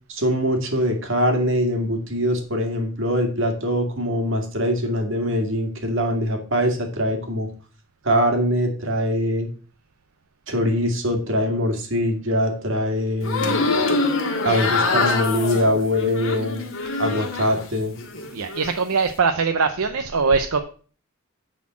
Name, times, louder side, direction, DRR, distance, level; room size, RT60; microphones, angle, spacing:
voice 1, 0.1-7.5 8.0-9.5 10.5-13.6 14.4-16.6 17.0-18.0, equal, 60° right, 4 dB, 2.0 m, -23 dB
sound 1, 13.2-17.6 18.0-18.7, left 3 dB, 60° left, 1.9 m, -24 dB
voice 2, 18.3-20.6, right 5 dB, 80° right, 7 dB, 0.7 m, -22 dB
9.7 x 4.2 x 7.3 m, 0.42 s
head